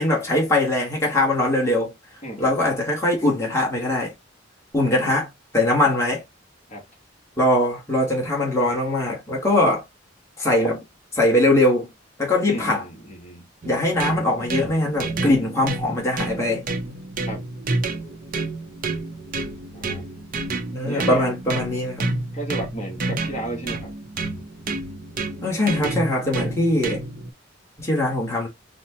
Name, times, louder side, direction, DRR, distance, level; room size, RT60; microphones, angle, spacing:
voice 1, 0.0-1.9 2.4-4.1 4.7-5.3 5.5-6.2 7.4-9.8 10.4-10.8 11.1-11.9 12.2-12.8 13.6-16.6 20.7-22.1 25.4-27.0 27.8-28.5, left 1 dB, 15° left, 1.2 m, -21 dB
voice 2, 2.2-2.5 4.8-5.1 6.7-6.8 12.5-13.5 17.3-17.5 19.7-20.0 20.9-21.4 22.3-23.9 26.5-26.6, right 1 dB, 35° left, 1.2 m, -33 dB
sound 1, 13.6-27.3, right 2 dB, 45° right, 0.6 m, -30 dB
4.2 x 2.1 x 2.7 m
head